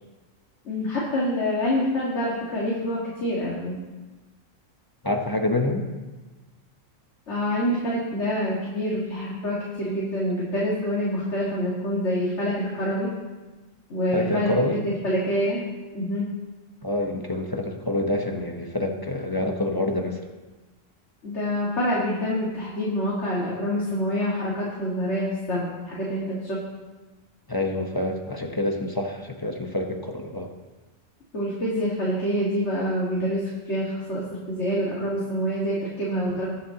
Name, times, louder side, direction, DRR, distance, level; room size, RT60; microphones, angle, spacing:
voice 1, 0.6-3.7 7.3-13.1 13.9-15.6 15.9-16.3 21.2-26.6 31.3-36.5, equal, 55° left, -6 dB, 2.2 m, -26 dB
voice 2, 5.0-5.9 14.1-14.8 16.8-20.2 27.5-30.5, left 1 dB, 20° left, 3 dB, 0.8 m, -27 dB
20.0 x 7.3 x 2.9 m, 1.2 s
omnidirectional pair, 1.4 m